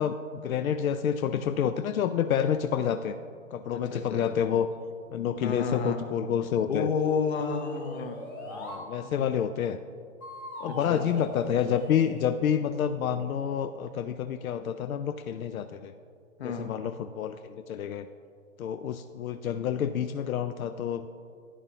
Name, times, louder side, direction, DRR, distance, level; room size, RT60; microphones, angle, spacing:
voice 1, 0.0-3.1 3.5-4.7 5.1-6.9 8.5-9.8 10.6-15.9 16.4-18.1 18.6-21.1, left 8 dB, 90° left, 11 dB, 0.5 m, -28 dB
voice 2, 3.7-4.3 5.4-6.0 6.7-8.2 9.0-9.3 10.7-11.2 16.4-16.7, left 5 dB, 50° left, 6 dB, 1.1 m, -31 dB
sound 1, 7.0-8.9 10.2-12.3, left 1 dB, 15° left, 0.8 m, -41 dB
11.0 x 10.0 x 2.9 m, 2.3 s
hypercardioid pair, 165°, 40 cm